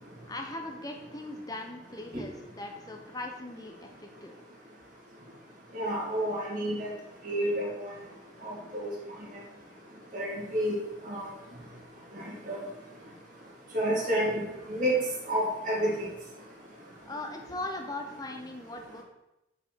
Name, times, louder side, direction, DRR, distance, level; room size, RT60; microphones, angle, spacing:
voice 1, 0.3-4.4 17.0-19.0, left 2 dB, 20° left, 3 dB, 1.0 m, -39 dB
voice 2, 5.7-6.9 7.2-7.9 8.4-8.9 10.1-10.8 11.0-11.3 12.5-12.6 13.7-14.9 15.3-15.9, equal, 45° right, -4 dB, 2.4 m, -29 dB
5.9 x 5.5 x 6.3 m, 0.90 s
head